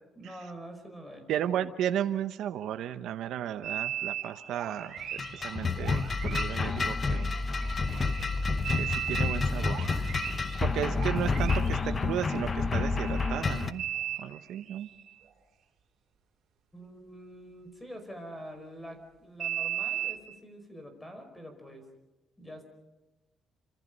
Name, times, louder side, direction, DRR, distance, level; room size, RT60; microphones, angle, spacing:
voice 1, 0.1-1.3 16.7-21.9 22.4-22.6, equal, 10° left, 7 dB, 5.1 m, -45 dB
voice 2, 1.3-7.3 8.7-9.9 10.6-13.8 14.2-14.9, right 10 dB, 80° right, 8 dB, 1.0 m, -34 dB
sound 1, 3.6-15.1 19.4-20.2, right 11 dB, 60° right, 5.0 m, -38 dB
sound 2, 5.0-13.7, left 4 dB, 25° left, 0.9 m, -29 dB
28.0 x 26.0 x 5.5 m, 1.0 s
cardioid pair, 150°, 0 cm